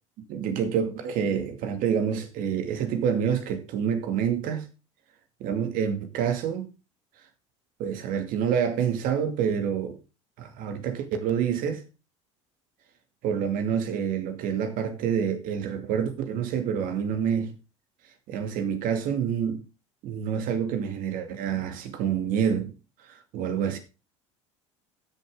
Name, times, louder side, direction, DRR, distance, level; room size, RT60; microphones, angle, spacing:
voice 1, 0.3-4.7 5.4-6.7 7.8-10.0 10.4-11.8 13.2-17.5 18.3-19.6 20.0-22.7 23.1-23.8, right 8 dB, 60° right, 2.3 m, -27 dB
14.0 x 7.0 x 3.7 m
hypercardioid pair, 80°, 16 cm